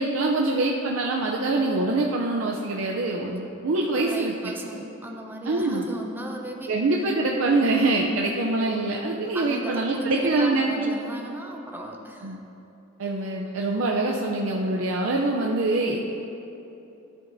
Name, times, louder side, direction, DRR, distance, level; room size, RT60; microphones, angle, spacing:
voice 1, 0.0-4.3 5.4-5.9 6.7-10.9 12.2-12.4 13.0-16.0, right 2 dB, 75° right, -1 dB, 0.6 m, -24 dB
voice 2, 3.9-6.8 9.3-12.4, right 1 dB, 10° right, 1 dB, 0.6 m, -36 dB
12.5 x 7.1 x 2.6 m, 2.9 s
head